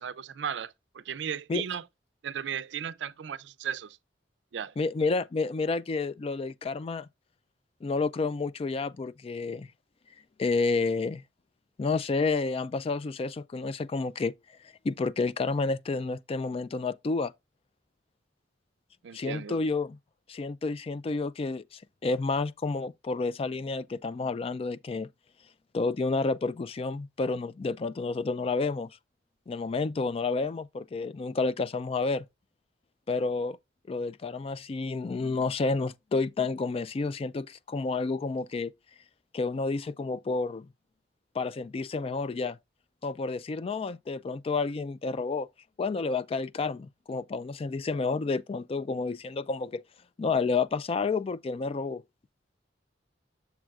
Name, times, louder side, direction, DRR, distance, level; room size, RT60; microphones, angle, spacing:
voice 1, 0.0-1.8 2.2-4.0 4.5-4.7 19.0-19.6, right 8 dB, 75° right, 0.4 m, -35 dB
voice 2, 4.8-7.1 7.8-9.7 10.4-11.2 11.8-14.3 14.8-17.3 19.1-20.0 20.3-25.1 25.7-28.9 29.5-32.2 33.1-33.6 33.9-38.7 39.3-40.7 41.3-42.6 43.0-45.5 45.8-49.8 50.2-52.0, left 3 dB, 30° left, 0.3 m, -30 dB
7.5 x 7.1 x 2.3 m
head